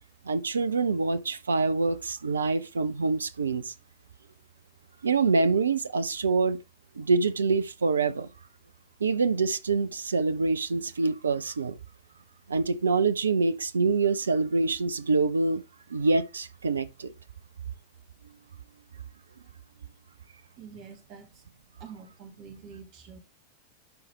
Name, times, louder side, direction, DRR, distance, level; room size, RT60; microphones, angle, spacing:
voice 1, 0.2-3.7 5.0-6.6 7.0-8.3 9.0-11.8 12.5-15.6 15.9-17.1, right 4 dB, 75° right, 0.7 m, -25 dB
voice 2, 20.5-21.4 21.8-23.2, right 6 dB, 40° right, 2.1 m, -46 dB
11.5 x 4.9 x 3.3 m
figure-of-eight pair, 90°, 0 cm